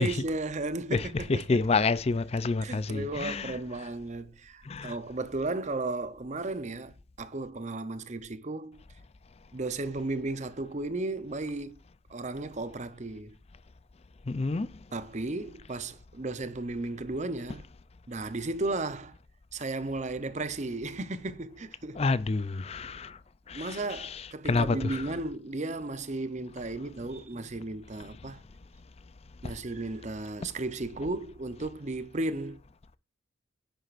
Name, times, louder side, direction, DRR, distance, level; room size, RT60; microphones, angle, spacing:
voice 1, 0.0-1.6 2.6-8.8 9.5-11.8 12.1-13.3 14.9-17.6 18.1-19.1 19.5-22.0 23.5-28.4 29.4-32.6, right 2 dB, 35° right, 0.7 m, -34 dB
voice 2, 0.9-3.6 4.7-5.0 14.3-14.7 22.0-23.1 23.5-25.2, left 3 dB, 30° left, 0.4 m, -29 dB
10.0 x 8.0 x 2.5 m
head